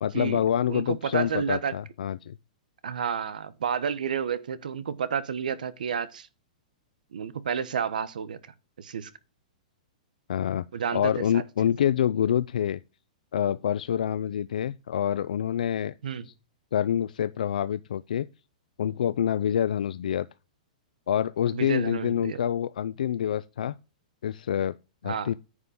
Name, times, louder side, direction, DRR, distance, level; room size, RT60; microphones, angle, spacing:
voice 1, 0.0-2.4 10.3-10.6 10.9-12.8 13.3-15.9 16.2-16.3 16.7-18.3 18.8-20.3 21.1-23.7 24.2-24.8 25.0-25.4, left 9 dB, 80° left, 0.4 m, -26 dB
voice 2, 0.7-1.7 2.8-6.3 7.1-8.4 8.8-9.1 10.7-11.4 16.0-16.3 21.5-22.4 25.1-25.3, right 7 dB, 85° right, 1.0 m, -30 dB
9.7 x 3.7 x 6.9 m
hypercardioid pair, 155°, 4 cm